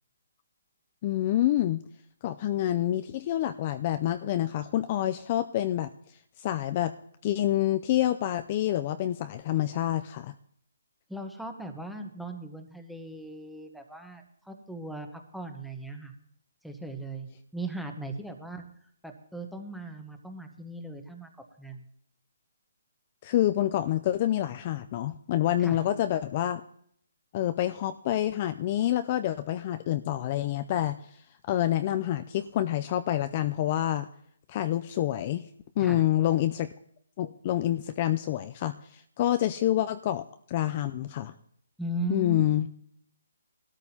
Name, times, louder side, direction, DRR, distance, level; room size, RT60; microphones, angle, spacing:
voice 1, 1.0-1.8 2.2-5.9 6.4-6.9 7.2-10.3 23.2-26.6 27.3-31.2 31.5-34.1 34.5-35.4 35.8-36.7 37.2-41.3 42.1-42.7, left 12 dB, 30° left, 10 dB, 0.4 m, -27 dB
voice 2, 11.1-16.1 16.6-18.6 19.0-21.3 21.6-21.8 25.6-25.8 35.8-36.0 41.8-42.4, right 1 dB, ahead, 4 dB, 1.0 m, -38 dB
19.5 x 13.0 x 2.8 m, 0.68 s
hypercardioid pair, 160°, 0 cm